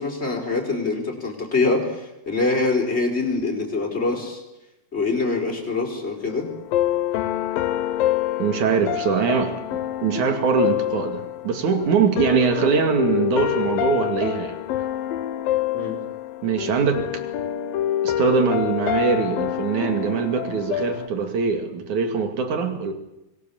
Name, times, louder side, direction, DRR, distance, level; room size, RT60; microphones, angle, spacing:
voice 1, 0.0-4.4 4.9-6.5 15.7-16.0, left 3 dB, 15° left, 2 dB, 4.3 m, -24 dB
sound 1, 6.3-21.1, left 12 dB, 80° left, 2.8 m, -26 dB
voice 2, 8.4-14.6 16.4-17.0 18.0-22.9, right 6 dB, 60° right, 6 dB, 3.7 m, -22 dB
25.5 x 19.5 x 7.2 m, 0.93 s
omnidirectional pair, 4.1 m